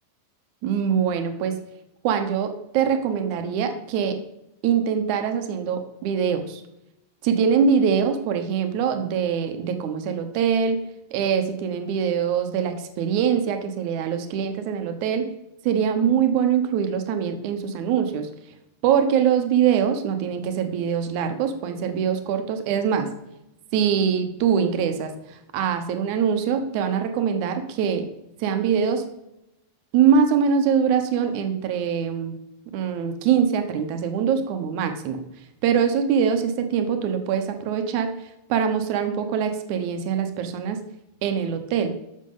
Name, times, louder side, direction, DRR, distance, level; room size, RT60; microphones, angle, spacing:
voice 1, 0.6-1.6 2.0-4.2 4.6-6.6 7.2-10.8 11.1-15.3 15.6-18.3 18.8-23.1 23.7-28.1 28.4-29.0 29.9-32.4 32.7-35.2 35.6-40.8 41.2-41.9, right 7 dB, 80° right, 7 dB, 1.7 m, -23 dB
13.0 x 6.5 x 5.5 m, 0.88 s
omnidirectional pair, 5.0 m